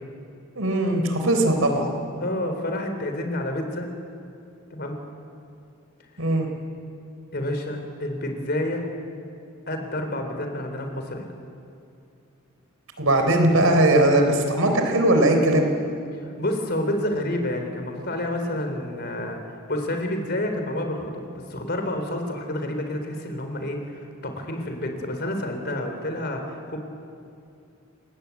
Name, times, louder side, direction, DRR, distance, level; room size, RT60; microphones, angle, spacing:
voice 1, 0.6-1.9 6.2-6.5 13.0-15.7, right 1 dB, 80° right, 4 dB, 4.1 m, -19 dB
voice 2, 2.2-3.9 4.7-5.0 7.3-8.8 9.7-11.3 16.4-26.8, left 1 dB, 50° left, 5 dB, 3.7 m, -29 dB
28.0 x 19.5 x 8.4 m, 2.5 s
head